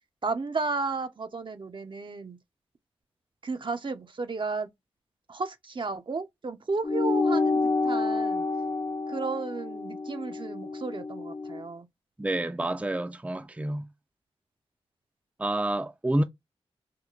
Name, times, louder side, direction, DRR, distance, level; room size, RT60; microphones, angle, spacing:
voice 1, 0.2-2.4 3.4-4.7 5.3-8.4 9.1-11.9, right 4 dB, 50° right, 0.7 m, -33 dB
sound 1, 6.8-11.6, left 3 dB, 30° left, 0.5 m, -28 dB
voice 2, 12.2-13.9 15.4-16.2, right 1 dB, 15° right, 0.5 m, -28 dB
4.5 x 2.2 x 2.4 m
cardioid pair, 45°, 11 cm